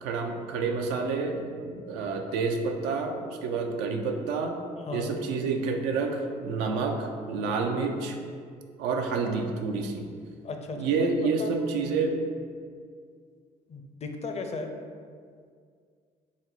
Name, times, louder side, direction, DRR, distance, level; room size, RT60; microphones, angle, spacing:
voice 1, 0.0-4.6 4.9-8.2 8.8-10.1 10.8-12.2, right 4 dB, 80° right, 3 dB, 0.4 m, -29 dB
voice 2, 4.9-5.2 10.4-11.1 11.4-11.6 13.7-14.7, left 3 dB, 35° left, 5 dB, 0.5 m, -35 dB
4.0 x 2.0 x 3.8 m, 2.1 s
hypercardioid pair, 55°, 19 cm